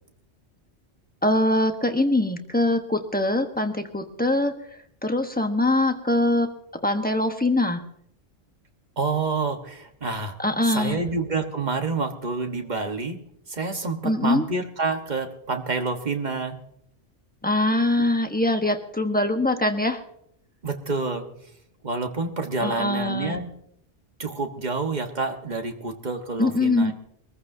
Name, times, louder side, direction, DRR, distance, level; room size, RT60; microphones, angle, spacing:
voice 1, 1.2-4.5 5.0-6.5 6.8-7.8 10.4-11.0 14.0-14.4 17.4-20.0 22.6-23.4 26.4-26.9, left 2 dB, 10° left, 5 dB, 1.0 m, -23 dB
voice 2, 9.0-10.4 10.6-13.2 13.5-16.6 20.6-21.3 21.8-23.5 24.2-26.9, right 3 dB, 40° right, 5 dB, 1.4 m, -28 dB
24.0 x 14.5 x 2.7 m, 0.72 s
omnidirectional pair, 1.2 m